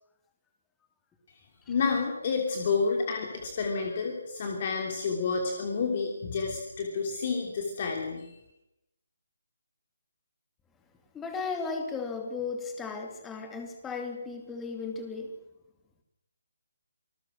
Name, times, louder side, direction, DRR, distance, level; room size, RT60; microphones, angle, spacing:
voice 1, 1.7-8.3, left 4 dB, 35° left, 2 dB, 3.2 m, -30 dB
voice 2, 11.1-15.4, left 4 dB, 10° left, 5 dB, 2.6 m, -35 dB
27.0 x 20.5 x 6.3 m, 0.87 s
figure-of-eight pair, 145°, 0 cm